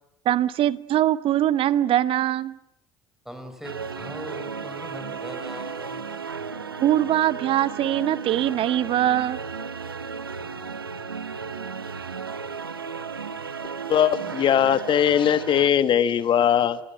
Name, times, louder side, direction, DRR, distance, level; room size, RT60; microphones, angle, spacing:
voice 1, 0.2-2.5 6.8-9.4, right 12 dB, 50° right, 18 dB, 1.0 m, -22 dB
voice 2, 3.2-6.0, equal, 5° right, 7 dB, 6.1 m, -40 dB
sound 1, 3.6-15.7, right 5 dB, 90° right, 1.1 m, -34 dB
voice 3, 13.9-16.8, left 9 dB, 45° left, 13 dB, 1.4 m, -20 dB
29.5 x 20.5 x 8.9 m, 0.81 s
figure-of-eight pair, 55°, 12 cm